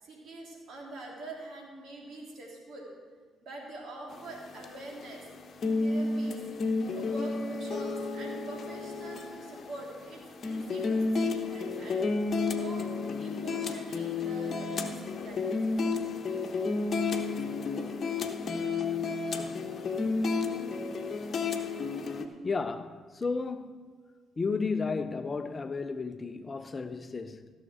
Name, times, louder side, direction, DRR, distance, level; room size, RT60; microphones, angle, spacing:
voice 1, 0.0-2.9 3.4-5.2 5.8-6.4 6.9-12.0 12.4-12.9 13.2-15.8, right 2 dB, 60° right, 3.2 m, -44 dB
sound 1, 4.1-22.3, left 4 dB, 50° left, 1.0 m, -32 dB
voice 2, 22.4-23.9 24.4-27.5, left 4 dB, 35° left, 0.6 m, -33 dB
15.0 x 6.5 x 6.2 m
hypercardioid pair, 45°, 0 cm